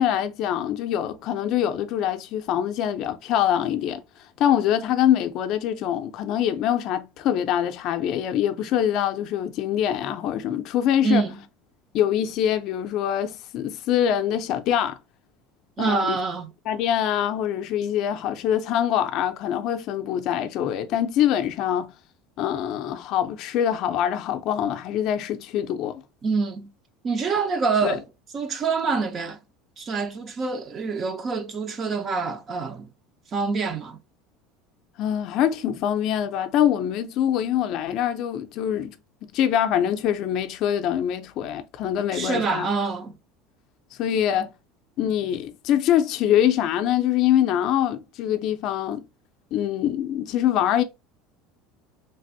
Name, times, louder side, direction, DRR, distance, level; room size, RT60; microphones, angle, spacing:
voice 1, 0.0-4.0 4.4-11.3 11.9-15.0 15.8-16.2 16.7-21.9 22.4-26.0 27.8-28.0 35.0-38.9 39.2-42.7 44.0-44.5 45.0-49.0 49.5-50.8, left 10 dB, 45° left, 0.4 m, -24 dB
voice 2, 11.0-11.3 15.8-16.5 26.2-26.7 27.0-28.0 28.3-29.4 29.8-32.9 33.3-34.0 42.1-43.1, right 4 dB, 25° right, 0.4 m, -26 dB
3.3 x 2.5 x 2.5 m
cardioid pair, 165°, 0 cm